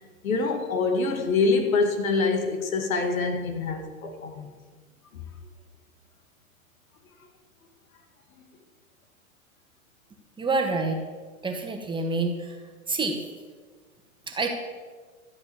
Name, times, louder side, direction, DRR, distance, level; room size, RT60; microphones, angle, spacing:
voice 1, 0.2-4.5, left 4 dB, 75° left, 5 dB, 2.1 m, -25 dB
voice 2, 10.4-11.0 11.4-12.5 12.9-13.2 14.3-14.5, right 3 dB, 10° right, 3 dB, 1.5 m, -27 dB
13.0 x 7.5 x 7.0 m, 1.5 s
hypercardioid pair, 115°, 42 cm